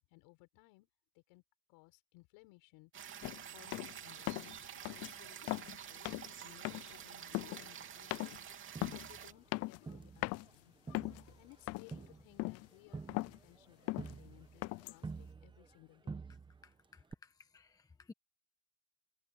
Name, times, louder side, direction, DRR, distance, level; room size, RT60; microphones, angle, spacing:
voice 1, 0.1-0.9 1.3-1.4 1.7-2.9 3.5-8.4 8.9-10.7 11.4-16.2, left 25 dB, 65° left, 7.3 m, -62 dB
sound 1, 2.9-9.3, right 9 dB, 30° right, 3.1 m, -49 dB
sound 2, 3.2-3.4 3.7-4.0 4.3-4.6 4.8-5.1 5.4-5.8 6.0-6.3 6.6-7.0 7.3-7.7 8.1-8.4 8.8-9.1 9.5-10.0 10.2-10.4 10.9-11.3 11.7-12.0 12.4-12.7 12.9-13.4 13.9-14.2 14.6-15.0, left 21 dB, 40° left, 0.5 m, -39 dB
Crowd, 8.8-10.6 10.9-15.8 16.1-16.7 17.1-17.2, right 4 dB, 10° right, 1.2 m, -49 dB
voice 2, 16.9-18.1, left 4 dB, 10° left, 1.2 m, -57 dB
supercardioid pair, 140°, 38 cm